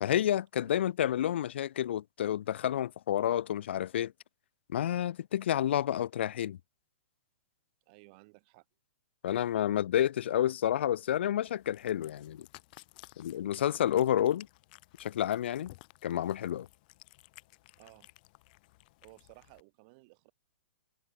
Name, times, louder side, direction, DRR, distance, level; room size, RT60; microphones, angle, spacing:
voice 1, 0.0-4.1 4.7-6.6 9.2-12.5 13.2-14.5 15.0-15.7 16.0-16.7, left 11 dB, 65° left, 0.5 m, -29 dB
voice 2, 7.9-8.7 17.8-18.1 19.0-20.3, right 29 dB, 45° right, 3.3 m, -57 dB
Cat, 11.4-19.6, left 22 dB, 45° left, 2.7 m, -57 dB
hypercardioid pair, 125°, 7 cm